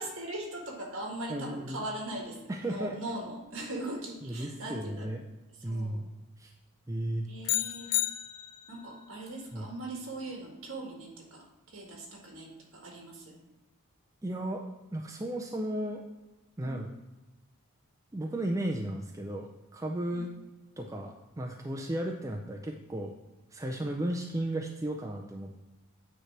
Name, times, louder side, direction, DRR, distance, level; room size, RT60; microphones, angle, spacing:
voice 1, 0.0-2.4 2.7-5.1 5.6-6.0 7.3-7.9 8.7-13.4 16.6-16.8 20.1-20.3, right 1 dB, 60° right, -1 dB, 1.9 m, -40 dB
voice 2, 1.3-1.8 2.5-3.0 4.2-5.2 5.6-6.0 6.4-6.5 6.9-7.3 9.5-9.7 14.2-16.0 16.6-16.9 18.1-20.3 20.8-23.1 23.5-25.6, right 1 dB, 15° right, 1 dB, 0.4 m, -34 dB
sound 1, 7.5-8.9, left 15 dB, 80° left, 0.3 m, -31 dB
9.2 x 3.3 x 5.9 m, 1.1 s
head